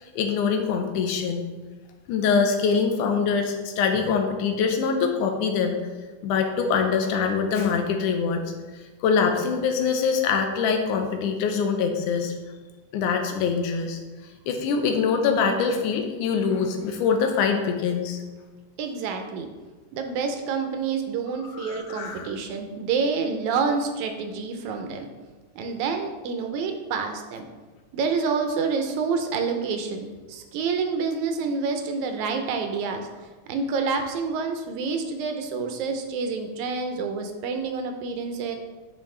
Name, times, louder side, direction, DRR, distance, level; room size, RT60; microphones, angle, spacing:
voice 1, 0.0-1.4 2.1-5.8 6.2-8.4 9.0-12.3 12.9-14.0 14.5-18.2 21.6-22.3, left 5 dB, 85° left, 5 dB, 2.2 m, -24 dB
voice 2, 18.8-19.5 19.9-25.1 25.6-27.5 27.9-38.6, right 5 dB, 80° right, 5 dB, 2.0 m, -28 dB
9.0 x 5.2 x 3.2 m, 1.3 s
omnidirectional pair, 3.5 m